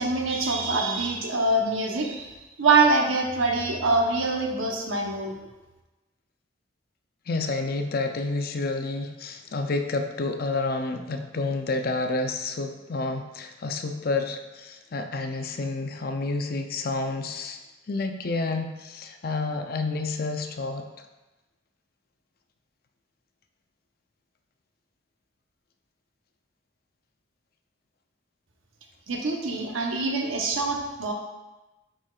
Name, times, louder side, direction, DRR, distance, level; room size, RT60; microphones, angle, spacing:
voice 1, 0.0-2.3 2.6-5.4 29.1-31.1, right 3 dB, 85° right, 1 dB, 0.9 m, -24 dB
voice 2, 7.3-17.6 17.9-20.8, left 3 dB, 50° left, 6 dB, 0.5 m, -29 dB
9.3 x 4.4 x 2.4 m, 1.1 s
head